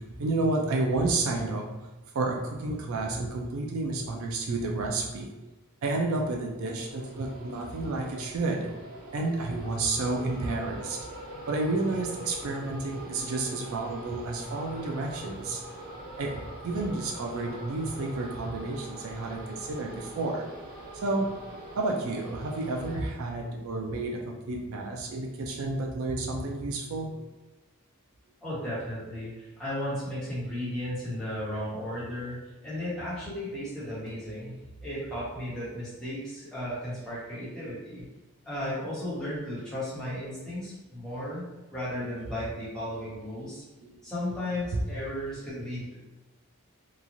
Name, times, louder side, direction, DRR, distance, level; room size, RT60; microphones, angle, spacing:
voice 1, 0.0-1.9 2.1-5.3 5.8-8.7 9.1-11.1 11.5-15.6 16.2-20.4 21.0-21.3 21.8-27.1 43.8-43.9 44.7-44.8, right 2 dB, 70° right, 1 dB, 0.4 m, -30 dB
sound 1, 6.7-23.0, right 1 dB, 85° right, 1.0 m, -43 dB
voice 2, 28.4-34.6 34.8-38.0 38.4-41.4 41.7-43.6 44.0-46.0, left 1 dB, 5° left, -11 dB, 1.1 m, -35 dB
3.0 x 2.4 x 2.5 m, 1.1 s
head